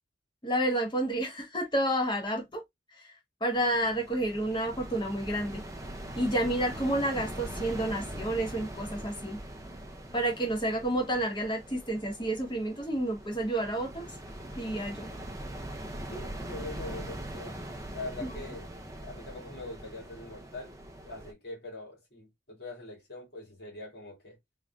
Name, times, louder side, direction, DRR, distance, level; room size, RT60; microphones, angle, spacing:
voice 1, 0.4-2.6 3.4-5.6 6.2-9.4 10.1-14.1 14.6-15.1, right 1 dB, 25° left, 1.2 m, -30 dB
sound 1, 3.5-21.3, right 1 dB, 15° right, 0.6 m, -42 dB
voice 2, 16.1-17.6 17.9-18.7 19.0-20.7 21.1-24.4, left 2 dB, 60° left, 2.2 m, -43 dB
3.7 x 3.5 x 2.3 m
head